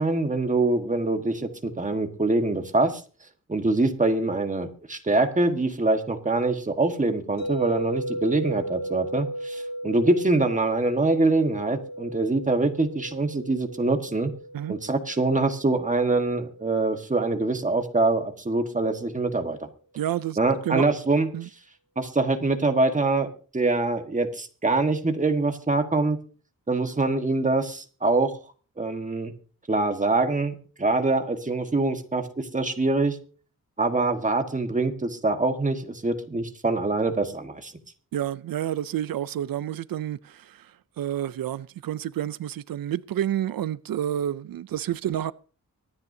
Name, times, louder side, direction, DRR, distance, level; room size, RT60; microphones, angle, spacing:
voice 1, 0.0-3.0 3.5-14.3 14.7-19.6 20.4-21.3 22.0-26.2 26.7-28.3 28.8-29.3 29.7-33.2 33.8-37.7, right 2 dB, 20° right, 1.5 m, -24 dB
sound 1, 7.4-17.5, right 1 dB, 80° left, 6.8 m, -36 dB
voice 2, 20.0-20.4 20.6-20.9 21.3-21.5 38.1-45.3, right 11 dB, 90° right, 0.5 m, -29 dB
24.0 x 9.6 x 2.7 m
wide cardioid pair, 135°, 34 cm